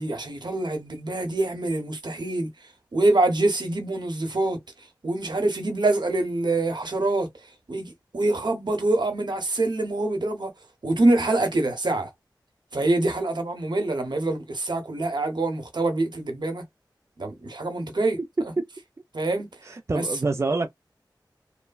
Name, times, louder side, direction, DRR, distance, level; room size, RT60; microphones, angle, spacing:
voice 1, 0.0-2.5 2.9-4.6 5.0-7.3 7.7-10.5 10.8-12.1 12.7-16.6 17.2-18.2 19.1-19.5 19.9-20.1, right 2 dB, 70° right, 0.9 m, -25 dB
voice 2, 19.6-20.7, right 3 dB, 35° right, 0.4 m, -26 dB
3.1 x 2.1 x 2.3 m
wide cardioid pair, 60°, 8 cm